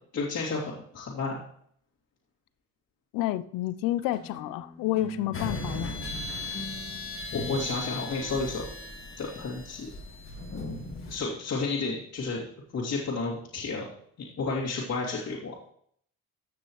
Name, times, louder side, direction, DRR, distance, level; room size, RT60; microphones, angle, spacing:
voice 1, 0.1-1.4 7.3-8.7 9.2-9.9 11.1-12.4 12.7-13.9 14.4-15.5, left 3 dB, 55° left, -7 dB, 2.8 m, -31 dB
voice 2, 3.1-6.1, left 15 dB, 85° left, 16 dB, 0.6 m, -30 dB
sound 1, 4.1-9.7, equal, 20° left, 2.4 m, -45 dB
sound 2, 5.3-11.2, left 2 dB, 40° left, 2.0 m, -37 dB
15.5 x 6.1 x 3.2 m, 0.63 s
cardioid pair, 85°, 33 cm